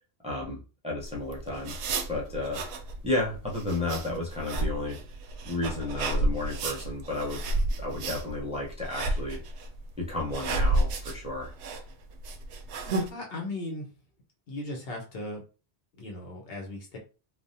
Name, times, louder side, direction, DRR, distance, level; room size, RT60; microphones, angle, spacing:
voice 1, 0.2-0.6 0.8-1.7 2.1-2.6 3.0-5.0 5.4-7.4 7.8-9.4 10.0-11.5, left 2 dB, 5° right, -3 dB, 0.6 m, -32 dB
sound 1, 1.0-13.1, right 2 dB, 85° right, 0.9 m, -31 dB
voice 2, 13.1-13.9 14.5-15.4 16.0-17.0, left 2 dB, 65° left, 0 dB, 1.0 m, -37 dB
3.2 x 2.1 x 2.7 m, 0.34 s
omnidirectional pair, 1.1 m